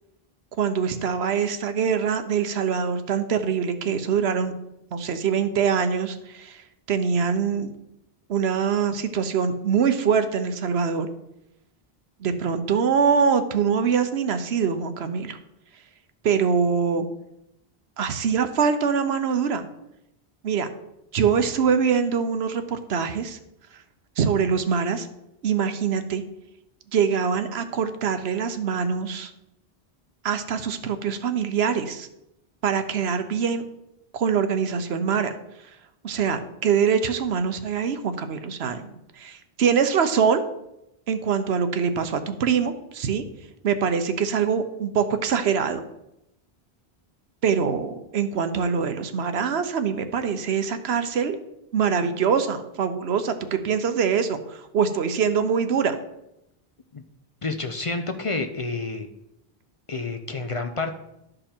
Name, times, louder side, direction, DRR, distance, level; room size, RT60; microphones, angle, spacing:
voice 1, 0.6-4.5 4.9-6.6 6.9-7.7 8.3-11.1 12.2-15.4 16.2-17.0 18.0-19.7 20.4-20.7 21.1-23.4 24.2-25.1 25.4-26.2 26.9-29.3 30.2-32.1 32.6-33.6 34.1-35.3 36.0-40.4 41.1-43.2 43.6-45.8 47.4-51.4 51.7-55.9, right 6 dB, 85° right, 9 dB, 1.0 m, -24 dB
voice 2, 57.4-59.1 59.9-60.9, left 3 dB, 40° left, 6 dB, 0.6 m, -29 dB
12.0 x 5.1 x 4.4 m, 0.86 s
omnidirectional pair, 1.0 m